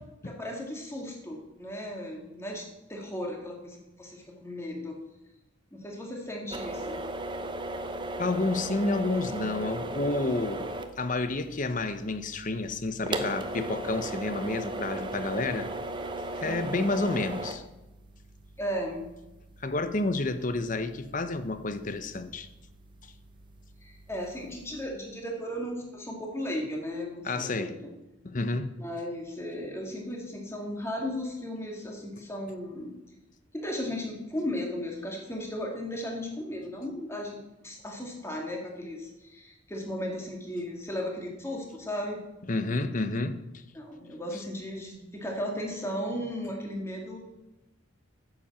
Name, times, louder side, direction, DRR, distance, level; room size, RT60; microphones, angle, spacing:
voice 1, 0.2-2.6 2.9-5.0 5.7-7.0 14.1-14.2 16.4-16.8 18.6-19.1 23.8-27.8 28.8-32.9 33.5-37.4 37.6-42.2 43.7-47.2, left 1 dB, 15° left, 2.3 m, -36 dB
sound 1, 6.5-24.9, right 2 dB, 25° right, 0.8 m, -38 dB
voice 2, 8.2-10.7 11.0-15.7 16.3-17.6 19.6-22.5 27.2-27.8 28.2-28.7 42.5-43.6 44.3-44.4, left 2 dB, 40° left, 0.7 m, -30 dB
9.8 x 7.3 x 7.5 m
head